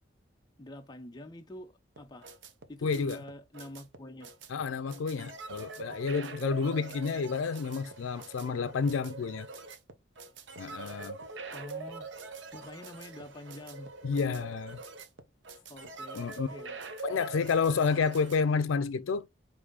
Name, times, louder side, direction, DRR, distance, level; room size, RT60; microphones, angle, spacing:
voice 1, 0.6-2.3 2.7-4.3 6.6-7.2 11.5-12.1 12.3-13.9 15.7-17.2, left 1 dB, 20° left, 0.5 m, -47 dB
sound 1, 2.0-18.4, right 4 dB, 65° right, 0.7 m, -44 dB
voice 2, 2.8-3.2 4.5-9.5 10.6-11.2 14.0-14.8 16.1-16.5 17.0-19.3, left 5 dB, 85° left, 0.4 m, -30 dB
4.9 x 2.7 x 3.6 m
head